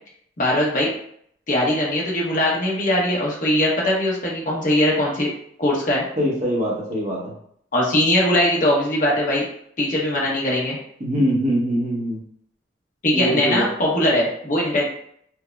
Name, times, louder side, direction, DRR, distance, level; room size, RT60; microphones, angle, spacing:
voice 1, 0.4-0.9 1.5-5.3 5.6-6.0 7.7-9.4 9.8-10.8 13.0-14.8, left 1 dB, 45° left, -3 dB, 0.9 m, -20 dB
voice 2, 6.2-7.3 11.0-12.2 13.1-13.6, equal, 40° right, -5 dB, 1.0 m, -22 dB
4.4 x 2.1 x 2.3 m, 0.67 s
head